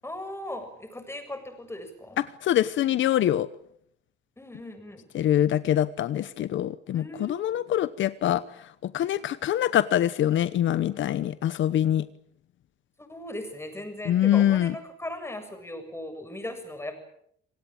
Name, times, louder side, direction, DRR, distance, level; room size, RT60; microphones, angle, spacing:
voice 1, 0.0-2.2 4.4-5.1 6.9-7.6 13.0-16.9, left 1 dB, 10° left, 8 dB, 7.2 m, -38 dB
voice 2, 2.4-3.5 5.1-8.4 8.8-12.0 14.1-14.7, left 11 dB, 75° left, 15 dB, 1.0 m, -24 dB
27.5 x 18.0 x 9.0 m, 0.71 s
cardioid pair, 90°, 20 cm